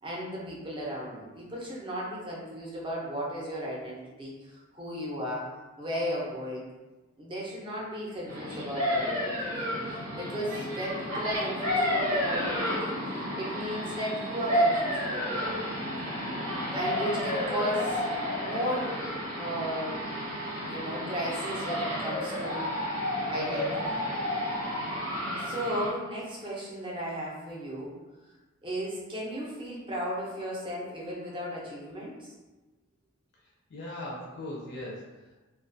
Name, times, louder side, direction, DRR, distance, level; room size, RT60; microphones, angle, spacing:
voice 1, 0.0-6.7 7.2-9.7 10.2-13.0 13.4-15.8 16.7-18.0 18.4-19.0 19.4-20.0 20.6-22.6 23.3-24.0 25.4-27.9 28.6-32.3, equal, 25° right, -5 dB, 0.5 m, -35 dB
sound 1, 8.3-25.9, equal, 90° right, 1.0 m, -31 dB
voice 2, 33.4-35.4, left 1 dB, 50° left, -4 dB, 0.4 m, -40 dB
2.2 x 2.2 x 2.5 m, 1.1 s
head